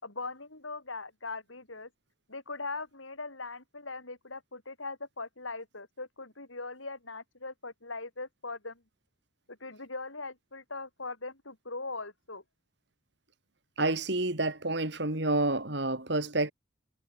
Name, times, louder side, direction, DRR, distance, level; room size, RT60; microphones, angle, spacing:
voice 1, 0.0-1.9 2.3-8.8 9.5-12.4, left 3 dB, 85° left, 6.1 m, -40 dB
voice 2, 13.8-16.5, right 2 dB, 60° right, 2.9 m, -29 dB
head